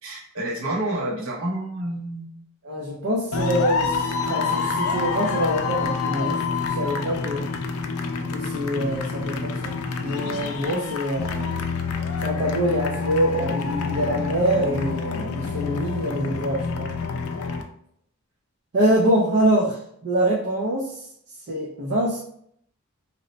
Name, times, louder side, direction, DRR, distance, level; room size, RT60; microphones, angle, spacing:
voice 1, 0.0-2.5, right 1 dB, 65° right, -3 dB, 1.0 m, -29 dB
voice 2, 2.6-6.4 6.7-7.5 8.3-11.5 12.2-16.9 18.7-21.1 21.5-22.2, right 1 dB, 50° right, -3 dB, 0.5 m, -25 dB
sound 1, 3.3-17.6, left 4 dB, 70° left, 0.4 m, -27 dB
2.9 x 2.1 x 3.9 m, 0.69 s
head